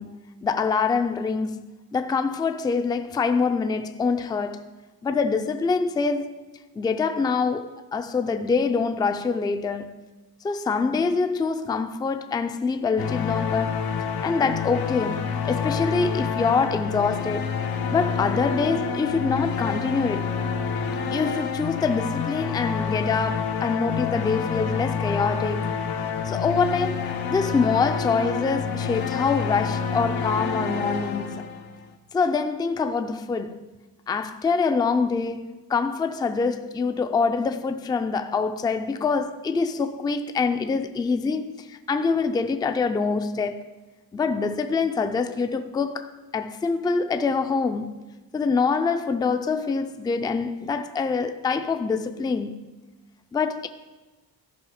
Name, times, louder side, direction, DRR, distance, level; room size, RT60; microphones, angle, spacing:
voice 1, 0.0-1.7 1.9-4.7 5.0-6.3 6.8-9.9 10.4-13.8 14.2-17.5 17.9-20.4 21.1-25.7 26.2-31.5 32.1-33.7 34.1-43.7 44.1-48.1 48.3-52.7 53.3-53.7, left 4 dB, 10° left, 0.3 m, -25 dB
sound 1, 13.0-31.9, left 6 dB, 85° left, 0.9 m, -28 dB
13.5 x 5.5 x 4.9 m
cardioid pair, 145°, 37 cm